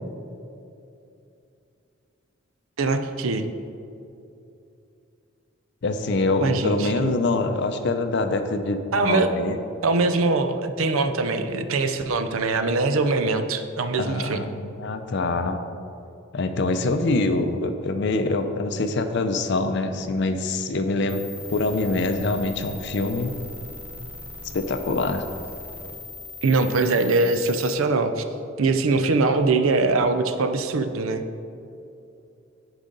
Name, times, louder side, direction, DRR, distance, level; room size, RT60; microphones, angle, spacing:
voice 1, 2.8-3.5 6.4-7.1 8.9-9.3 9.8-14.5 26.4-28.2 28.6-31.2, right 3 dB, 80° right, 9 dB, 0.5 m, -22 dB
voice 2, 5.8-9.6 14.0-15.6 16.3-21.2 21.5-23.4 24.5-25.2, left 2 dB, 55° left, 8 dB, 0.5 m, -25 dB
sound 1, 21.1-27.7, left 2 dB, 10° right, 0.8 m, -39 dB
10.0 x 4.9 x 3.8 m, 2.7 s
head